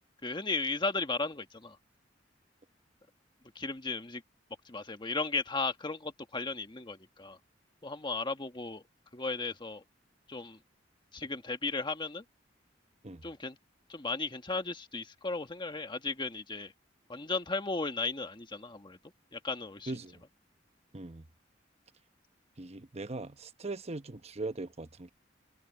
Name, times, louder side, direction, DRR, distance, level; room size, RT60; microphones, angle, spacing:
voice 1, 0.2-1.8 3.5-4.2 4.6-7.4 7.8-8.8 9.1-9.8 10.3-10.6 11.1-12.2 13.2-13.6 13.9-16.7 17.1-19.0 19.3-19.9, left 3 dB, 25° left, 1.5 m, -35 dB
voice 2, 19.9-20.2 20.9-21.2 22.6-25.1, right 2 dB, 35° right, 1.0 m, -40 dB
head